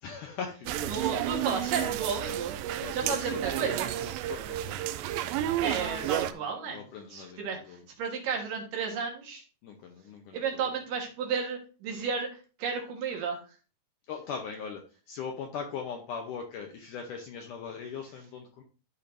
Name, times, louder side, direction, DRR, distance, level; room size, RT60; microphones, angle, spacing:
voice 1, 0.0-1.1 2.8-4.8 5.6-7.8 9.6-10.8 14.1-18.6, left 6 dB, 75° left, 3 dB, 2.0 m, -41 dB
sound 1, 0.7-6.3, right 11 dB, 80° right, 2.1 m, -31 dB
voice 2, 0.9-2.6 2.9-3.9 5.6-6.8 7.1-7.6 8.0-9.4 10.3-12.3 12.6-13.4, right 6 dB, 65° right, 1 dB, 2.8 m, -32 dB
12.5 x 5.0 x 2.6 m, 0.34 s
omnidirectional pair, 4.5 m